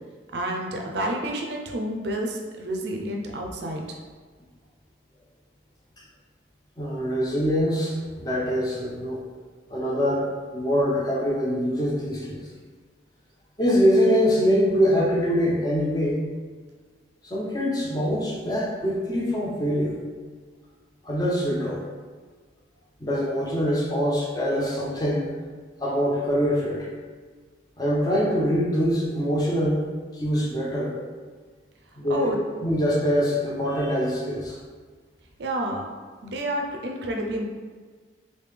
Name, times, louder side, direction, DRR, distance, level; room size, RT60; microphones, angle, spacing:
voice 1, 0.3-3.8 32.1-32.4 35.4-35.8 36.2-37.5, right 1 dB, 60° right, 1 dB, 0.5 m, -29 dB
voice 2, 6.8-9.2 9.7-12.5 13.6-16.2 17.2-20.0 21.0-21.8 23.0-25.3 25.8-26.9 27.8-29.9 30.1-30.9 32.0-32.3 32.6-34.6, equal, 20° left, -4 dB, 0.5 m, -24 dB
3.2 x 2.6 x 3.4 m, 1.5 s
head